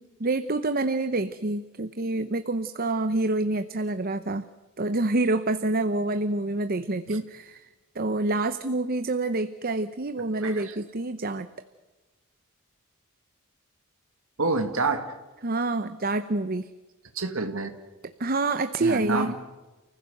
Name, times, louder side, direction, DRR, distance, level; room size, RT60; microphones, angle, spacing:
voice 1, 0.0-4.5 4.8-7.7 7.9-11.5 15.4-16.7 18.2-19.3, right 2 dB, 45° right, 11 dB, 0.8 m, -27 dB
voice 2, 10.4-10.8 14.4-15.1 17.1-17.7 18.8-19.3, right 3 dB, 70° right, 5 dB, 2.0 m, -28 dB
30.0 x 15.5 x 7.9 m, 1.2 s
head